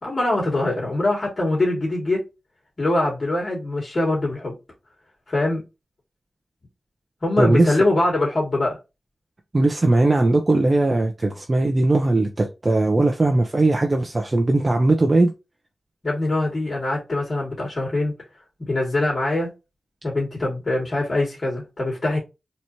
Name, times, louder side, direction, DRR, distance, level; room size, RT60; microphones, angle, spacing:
voice 1, 0.0-2.3 2.8-4.5 5.3-5.6 7.2-8.8 16.0-18.1 18.7-19.5 20.0-22.2, left 2 dB, 50° left, 2.5 m, -23 dB
voice 2, 7.4-7.8 9.5-15.3, right 2 dB, 40° right, 0.8 m, -19 dB
4.2 x 3.2 x 2.9 m
cardioid pair, 50°, 0 cm